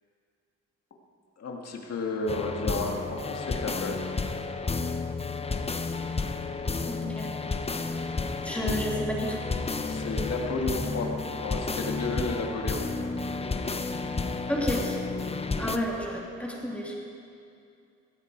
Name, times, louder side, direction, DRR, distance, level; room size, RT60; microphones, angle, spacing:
voice 1, 1.4-4.0 9.8-12.8, left 2 dB, 55° left, 1 dB, 2.3 m, -32 dB
sound 1, 2.3-15.8, left 3 dB, 20° left, 0.8 m, -31 dB
voice 2, 6.9-7.3 8.4-9.4 14.5-15.0 15.6-17.0, equal, 5° left, -3 dB, 2.9 m, -31 dB
16.5 x 14.5 x 4.8 m, 2.5 s
cardioid pair, 90°, 30 cm